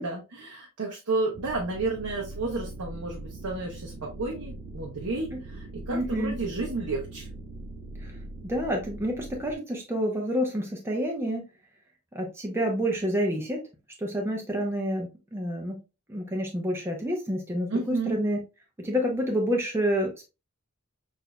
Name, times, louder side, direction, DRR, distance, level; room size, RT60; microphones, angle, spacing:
voice 1, 0.0-7.3 17.7-18.2, right 3 dB, 75° right, -1 dB, 0.9 m, -31 dB
sound 1, 1.3-9.5, right 2 dB, 40° right, 0.4 m, -41 dB
voice 2, 5.9-6.4 8.0-8.1 8.4-11.5 12.1-13.6 14.0-15.8 16.1-18.4 18.8-20.2, equal, 10° right, 1 dB, 0.7 m, -28 dB
6.0 x 2.7 x 2.2 m, 0.28 s
head